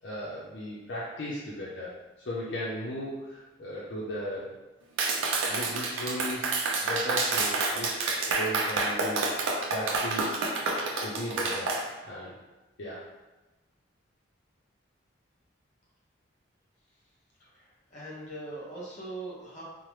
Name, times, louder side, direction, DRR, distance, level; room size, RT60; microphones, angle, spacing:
voice 1, 0.0-2.0 2.3-4.5 5.4-9.2 9.7-10.4 11.0-11.8 12.0-12.4 12.8-13.0, equal, 65° left, -6 dB, 0.5 m, -36 dB
Clapping, 5.0-11.8, right 3 dB, 90° right, 0.4 m, -28 dB
voice 2, 17.4-19.6, right 2 dB, 35° left, -6 dB, 0.9 m, -41 dB
2.9 x 2.0 x 3.1 m, 1.1 s
head